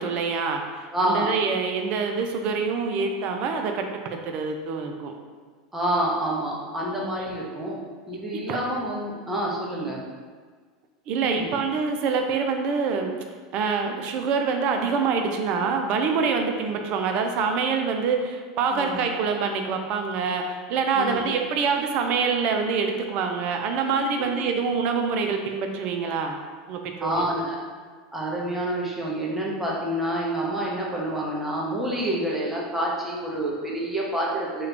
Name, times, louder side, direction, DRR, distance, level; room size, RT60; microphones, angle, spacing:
voice 1, 0.0-5.1 6.9-7.1 8.5-8.6 9.8-9.9 11.1-13.2 13.5-26.4 26.7-27.5, right 5 dB, 50° right, 4 dB, 0.4 m, -26 dB
voice 2, 0.9-1.3 5.7-7.8 8.1-10.0 11.2-11.5 18.7-19.0 20.9-21.3 24.2-24.4 27.0-27.6 28.1-34.7, right 1 dB, 10° right, -4 dB, 0.8 m, -28 dB
3.1 x 2.4 x 3.3 m, 1.5 s
hypercardioid pair, 95°, 3 cm